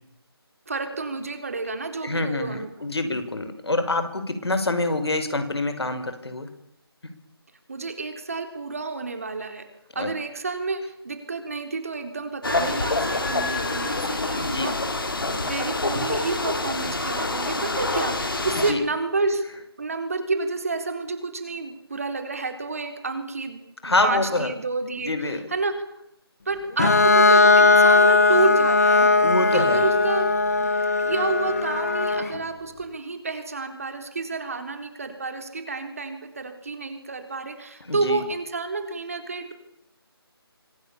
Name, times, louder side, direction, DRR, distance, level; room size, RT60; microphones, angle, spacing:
voice 1, 0.7-2.7 7.7-9.7 9.9-14.7 15.3-19.4 19.8-25.7 26.5-29.1 29.5-30.3 30.6-30.7 31.0-39.5, right 3 dB, 35° right, 7 dB, 4.2 m, -29 dB
voice 2, 2.0-6.5 9.9-10.1 14.3-14.7 18.7-18.8 23.8-24.5 25.0-25.4 29.2-29.8 37.9-38.2, left 2 dB, 75° left, 9 dB, 5.5 m, -26 dB
sound 1, 12.4-18.7, left 2 dB, 55° left, 5.6 m, -26 dB
Bowed string instrument, 26.8-32.4, left 3 dB, 40° left, 2.3 m, -18 dB
26.0 x 25.5 x 7.2 m, 0.79 s
figure-of-eight pair, 180°, 13 cm